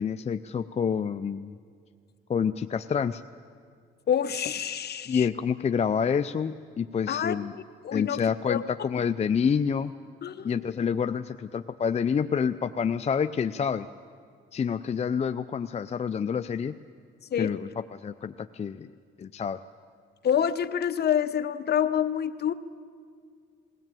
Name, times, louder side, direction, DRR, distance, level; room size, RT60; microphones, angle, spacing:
voice 1, 0.0-1.6 2.3-3.2 5.1-7.6 7.9-9.9 10.4-13.9 14.5-16.8 17.4-18.9 19.2-19.6, left 6 dB, 35° left, 10 dB, 0.5 m, -28 dB
voice 2, 4.1-5.2 7.1-7.3 7.8-8.6 10.2-10.6 17.3-17.5 20.2-22.5, left 9 dB, 55° left, 12 dB, 1.0 m, -27 dB
21.0 x 17.0 x 9.0 m, 2.1 s
cardioid pair, 90°, 20 cm